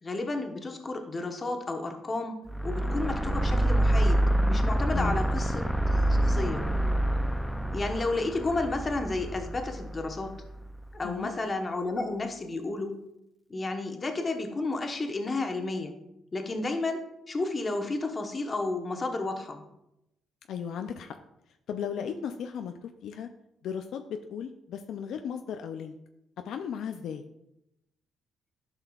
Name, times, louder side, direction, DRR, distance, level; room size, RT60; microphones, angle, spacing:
voice 1, 0.0-2.4 2.6-6.6 7.7-10.4 10.9-12.9 13.5-15.9 16.3-19.6, left 2 dB, 30° left, 4 dB, 1.0 m, -32 dB
sound 1, 2.5-10.8, right 1 dB, ahead, 0.4 m, -27 dB
voice 2, 4.9-5.2 11.0-11.3 20.5-21.2 21.7-23.3 23.6-26.0 26.4-27.2, left 7 dB, 75° left, 6 dB, 0.4 m, -36 dB
11.5 x 5.6 x 2.4 m, 0.85 s
cardioid pair, 90°, 0 cm